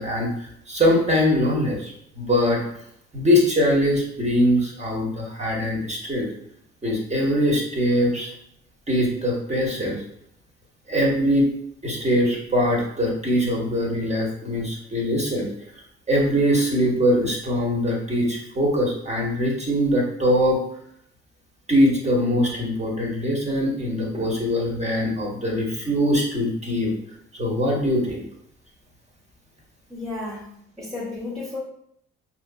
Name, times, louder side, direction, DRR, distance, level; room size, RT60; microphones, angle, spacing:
voice 1, 0.0-2.6 3.1-6.3 6.8-8.3 8.9-10.0 10.9-11.5 11.8-15.5 16.1-20.6 21.7-26.9 27.4-28.2, equal, 20° right, -2 dB, 1.3 m, -22 dB
voice 2, 29.9-31.6, left 2 dB, ahead, -5 dB, 1.1 m, -33 dB
5.4 x 2.9 x 2.3 m, 0.70 s
figure-of-eight pair, 50°, 33 cm